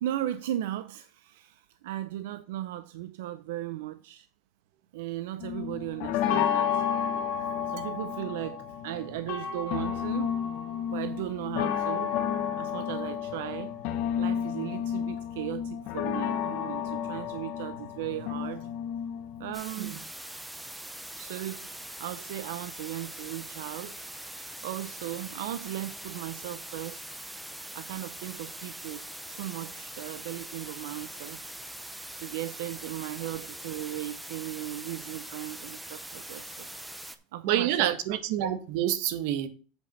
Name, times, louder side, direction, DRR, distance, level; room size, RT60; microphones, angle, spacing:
voice 1, 0.0-4.3 4.9-6.8 7.7-10.4 10.9-12.1 12.6-13.7 14.2-18.7 19.4-20.1 21.1-24.0 24.6-27.0 27.7-29.0 29.3-31.4 32.2-36.7 36.9-38.2, right 13 dB, 90° right, 0.5 m, -37 dB
sound 1, 5.4-19.5, left 8 dB, 60° left, 1.3 m, -31 dB
sound 2, 19.5-37.2, right 1 dB, 5° right, 0.7 m, -42 dB
voice 2, 37.4-39.5, right 11 dB, 65° right, 1.2 m, -27 dB
8.2 x 5.1 x 5.2 m
supercardioid pair, 150°, 0 cm